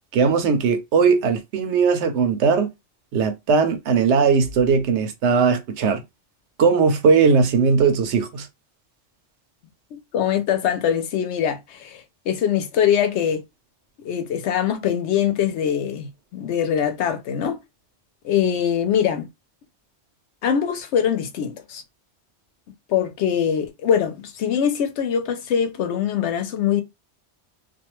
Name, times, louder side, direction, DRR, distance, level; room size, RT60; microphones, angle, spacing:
voice 1, 0.1-2.7 3.1-6.0 6.6-8.5, right 5 dB, 80° right, 0.9 m, -19 dB
voice 2, 9.9-13.4 14.0-17.6 18.2-19.3 20.4-21.8 22.9-26.8, left 8 dB, 75° left, 0.9 m, -23 dB
2.5 x 2.2 x 2.9 m
omnidirectional pair, 1.2 m